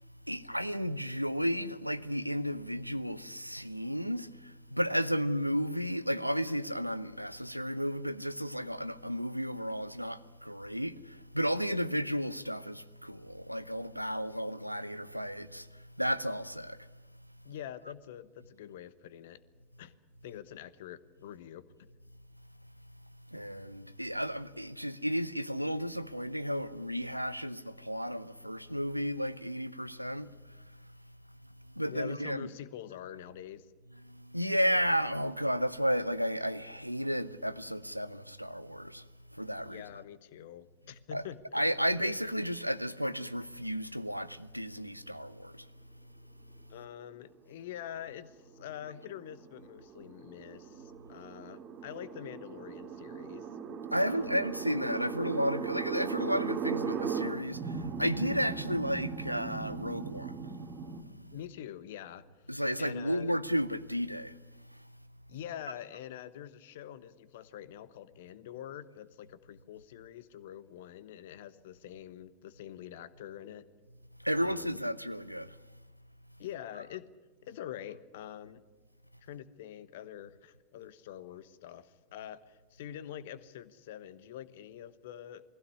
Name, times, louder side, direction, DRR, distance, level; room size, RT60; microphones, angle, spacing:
voice 1, 0.3-16.9 23.3-30.8 31.7-32.5 34.0-39.8 41.1-41.2 41.5-45.7 53.9-61.4 62.5-64.8 74.2-75.6, equal, 90° right, 0.7 m, -33 dB
voice 2, 17.4-19.4 19.8-19.9 20.2-21.6 31.8-33.7 39.6-41.6 42.0-42.1 46.7-53.5 54.0-54.4 61.3-62.3 62.8-63.3 65.3-73.7 74.4-74.8 76.4-77.1 77.4-78.6 79.2-85.4, left 11 dB, 55° left, 1.1 m, -45 dB
sound 1, 48.5-61.0, right 6 dB, 35° right, 2.1 m, -38 dB
21.0 x 15.5 x 9.8 m
figure-of-eight pair, 90°, 0 cm